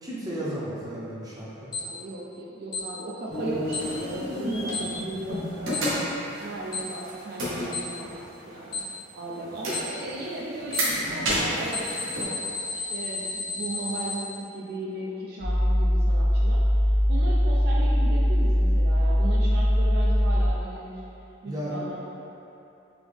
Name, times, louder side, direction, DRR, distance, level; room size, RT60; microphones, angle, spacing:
voice 1, 0.0-1.7 21.4-21.7, right 1 dB, 20° right, -7 dB, 0.7 m, -34 dB
Alarm, 1.7-1.8 2.7-2.8 3.7-3.8 4.7-4.8 5.7-5.8 6.7-6.8 7.7-7.8 8.7-8.8 9.7-9.8 10.7-10.8 11.7-14.2, left 3 dB, 20° left, 0.5 m, -31 dB
voice 2, 1.8-5.8 6.2-8.8 9.1-12.4 12.7-21.0 21.4-22.0, right 2 dB, 55° right, -5 dB, 0.4 m, -36 dB
sound 1, 3.3-8.9 9.3-12.2, equal, 85° right, 0.9 m, -31 dB
sound 2, 15.4-20.5, equal, 85° left, 0.5 m, -21 dB
3.9 x 2.9 x 3.4 m, 2.8 s
head